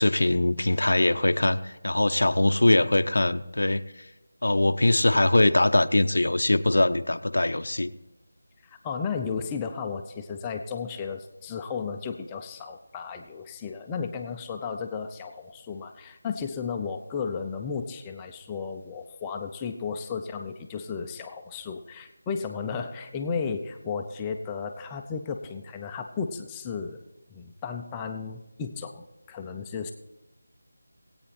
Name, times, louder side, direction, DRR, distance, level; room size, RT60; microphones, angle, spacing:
voice 1, 0.0-3.8 4.4-7.9, left 2 dB, 80° left, 9 dB, 0.7 m, -22 dB
voice 2, 8.6-27.0 27.3-29.9, left 5 dB, 10° left, 3 dB, 0.6 m, -34 dB
20.0 x 8.7 x 4.3 m, 1.0 s
figure-of-eight pair, 170°, 0 cm